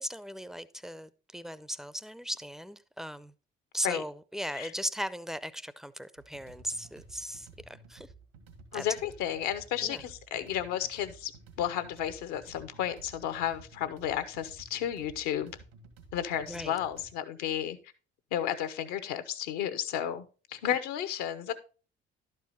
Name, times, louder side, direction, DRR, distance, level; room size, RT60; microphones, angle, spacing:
voice 1, 0.0-3.3 3.7-8.1 8.7-8.8 9.8-10.0 16.5-16.8 20.6-20.7, equal, ahead, 0.5 m, -38 dB
sound 1, 6.2-17.1, right 4 dB, 80° right, 2.0 m, -53 dB
voice 2, 8.7-11.3 11.6-15.6 16.1-17.8 18.3-21.5, left 10 dB, 70° left, 0.9 m, -32 dB
11.5 x 4.8 x 4.2 m
hypercardioid pair, 50°, 31 cm